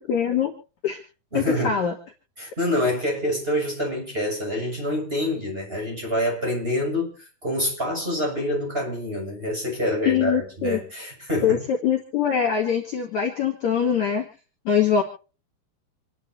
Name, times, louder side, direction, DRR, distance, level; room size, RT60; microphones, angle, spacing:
voice 1, 0.1-0.5 0.8-1.0 1.3-1.9 10.0-10.8 11.4-14.2 14.6-15.0, left 8 dB, 50° left, 3.2 m, -23 dB
voice 2, 1.3-1.8 2.4-11.6, left 1 dB, 15° right, 6.9 m, -26 dB
28.5 x 11.5 x 2.8 m
omnidirectional pair, 4.8 m